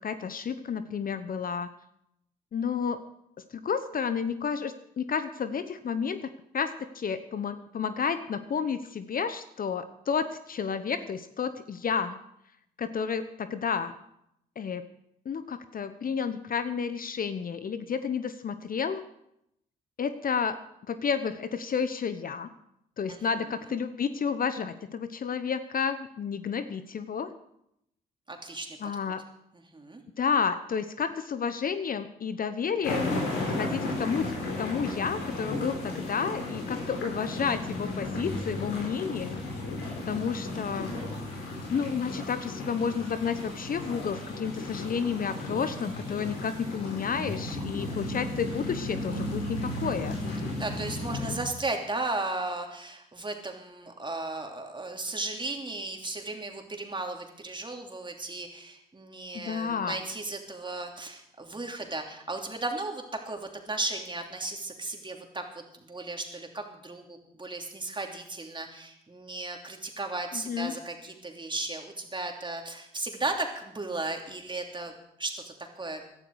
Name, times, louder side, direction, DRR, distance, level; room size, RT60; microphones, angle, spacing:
voice 1, 0.0-1.7 2.5-3.0 3.5-12.2 12.8-13.9 14.6-14.8 15.2-19.0 20.0-20.6 20.9-22.5 23.0-27.3 28.8-29.2 30.2-33.2 33.5-34.3 34.6-39.4 40.1-40.9 41.7-50.2 59.3-60.0 70.3-70.7, left 6 dB, 45° left, 12 dB, 1.0 m, -31 dB
voice 2, 28.3-28.8 29.5-30.0 50.6-76.0, right 2 dB, 25° right, 3 dB, 3.0 m, -35 dB
sound 1, 32.8-51.4, left 2 dB, 80° left, 4.4 m, -34 dB
17.0 x 12.0 x 4.8 m, 0.79 s
hypercardioid pair, 50°, 19 cm